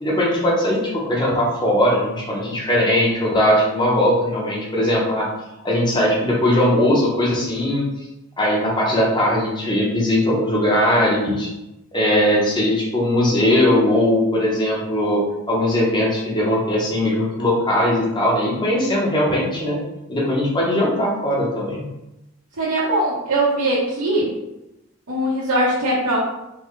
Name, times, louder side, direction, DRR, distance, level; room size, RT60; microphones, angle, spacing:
voice 1, 0.0-5.3 5.6-7.9 8.4-11.5 11.9-19.8 20.1-21.9, left 1 dB, 20° left, -3 dB, 0.7 m, -19 dB
voice 2, 22.6-24.3 25.1-26.2, right 1 dB, 80° right, -10 dB, 1.0 m, -20 dB
3.7 x 2.2 x 3.1 m, 0.93 s
head